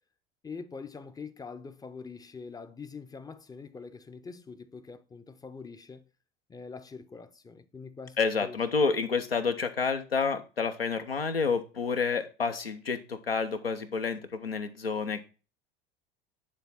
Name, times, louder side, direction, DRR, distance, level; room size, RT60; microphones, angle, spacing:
voice 1, 0.4-6.1 6.5-8.6, left 5 dB, 15° left, 0.5 m, -44 dB
voice 2, 8.2-15.2, left 5 dB, 85° left, 0.7 m, -29 dB
9.7 x 3.5 x 4.1 m
figure-of-eight pair, 70°, 29 cm